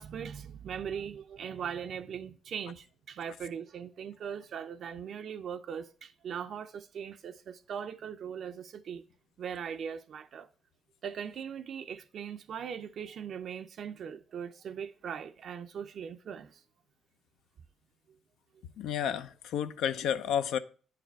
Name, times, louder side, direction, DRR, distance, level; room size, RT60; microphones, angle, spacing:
voice 1, 0.0-9.0 9.4-10.5 11.0-16.6, right 7 dB, 65° right, 0.4 m, -40 dB
voice 2, 18.8-20.6, left 8 dB, 85° left, 0.5 m, -31 dB
8.7 x 4.8 x 4.5 m
cardioid pair, 90°, 0 cm